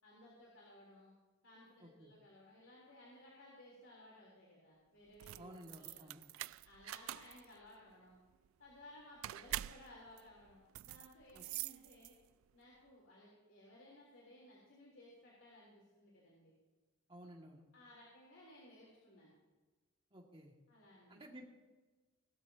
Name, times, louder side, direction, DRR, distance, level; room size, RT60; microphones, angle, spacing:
voice 1, 0.0-1.1 1.4-6.1 6.6-8.2 8.6-12.1 12.5-16.5 17.7-19.3 20.7-21.2, left 1 dB, 65° left, -5 dB, 3.7 m, -59 dB
voice 2, 1.8-2.1 5.3-6.2 11.3-11.4 17.1-17.6 20.1-20.5 21.1-21.5, equal, 25° right, 0 dB, 2.1 m, -54 dB
sound 1, 5.1-12.4, right 14 dB, 75° right, 0.3 m, -46 dB
20.0 x 12.5 x 2.9 m, 1.3 s
head